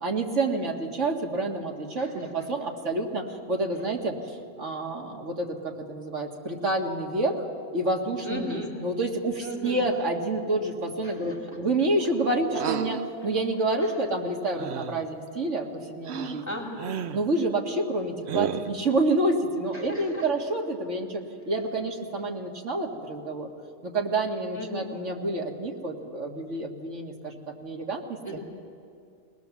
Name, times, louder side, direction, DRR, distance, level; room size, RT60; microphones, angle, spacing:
voice 1, 0.0-7.4 7.7-16.4 17.1-23.5 23.8-28.2, right 2 dB, 85° right, 1 dB, 2.2 m, -28 dB
voice 2, 2.0-2.3 3.8-3.9 8.2-8.7 9.4-9.9 11.0-11.4 13.8-14.0 16.4-16.9 19.7-20.3 24.5-24.9 28.2-28.4, equal, 15° left, -2 dB, 3.1 m, -36 dB
sound 1, 12.5-13.1 14.6-15.1 16.1-16.4 16.8-17.3 18.3-18.8, right 8 dB, 65° right, 0.9 m, -32 dB
21.0 x 19.5 x 7.2 m, 2.3 s
omnidirectional pair, 1.2 m